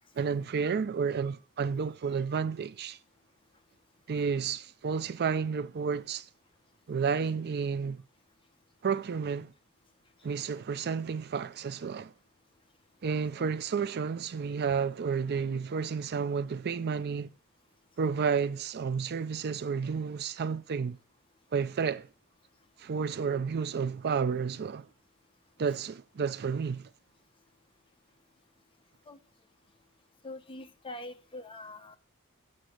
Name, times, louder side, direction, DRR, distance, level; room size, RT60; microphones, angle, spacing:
voice 1, 0.2-3.0 4.1-6.3 6.9-8.0 8.8-9.5 10.2-12.1 13.0-17.3 18.0-21.0 21.5-22.1 22.8-24.9 25.6-26.9, right 6 dB, 50° right, 0.4 m, -31 dB
voice 2, 30.2-32.0, left 2 dB, 25° left, 1.0 m, -44 dB
7.8 x 7.5 x 8.0 m
head